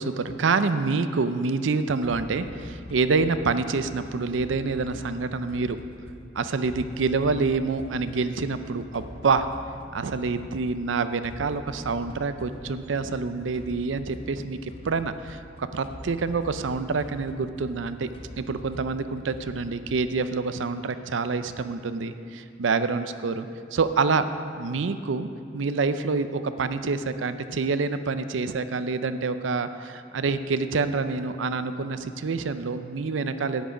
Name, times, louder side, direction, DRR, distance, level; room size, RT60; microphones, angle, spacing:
voice 1, 0.0-5.8 6.4-9.5 9.9-18.1 18.4-22.1 22.6-24.3 24.6-25.3 25.5-33.6, right 4 dB, 85° right, 11 dB, 0.5 m, -27 dB
sound 1, 2.0-20.4, left 1 dB, 30° left, 0.5 m, -45 dB
10.5 x 9.3 x 5.0 m, 2.5 s
head